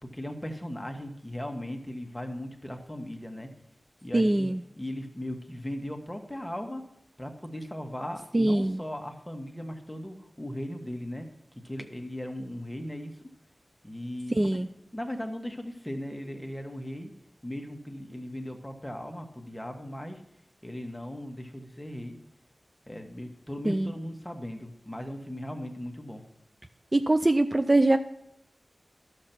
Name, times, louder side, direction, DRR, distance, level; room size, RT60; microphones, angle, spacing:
voice 1, 0.0-3.5 4.0-4.5 4.8-6.8 7.2-11.3 11.6-13.3 13.8-14.6 14.9-17.1 17.4-20.2 20.6-22.2 22.9-26.2, left 1 dB, 10° left, 3 dB, 1.3 m, -38 dB
voice 2, 4.1-4.6 8.3-8.8 14.3-14.7 23.7-23.9 26.9-28.0, right 2 dB, 30° right, 8 dB, 0.4 m, -23 dB
11.5 x 6.6 x 5.9 m, 0.79 s
wide cardioid pair, 55°, 0 cm